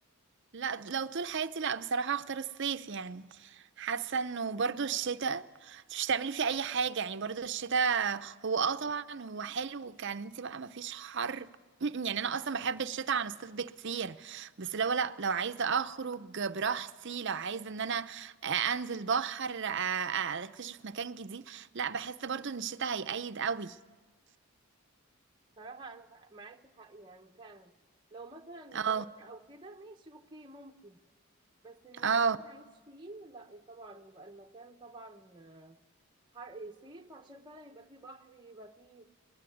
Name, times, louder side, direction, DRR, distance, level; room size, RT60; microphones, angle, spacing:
voice 1, 0.5-11.5 11.8-23.8 28.7-29.1 32.0-32.4, right 6 dB, 55° right, 0.7 m, -33 dB
voice 2, 25.6-27.7 28.1-31.0 31.6-32.2 32.5-35.8 36.3-39.1, right 2 dB, 20° right, 0.9 m, -50 dB
21.0 x 20.0 x 9.4 m
head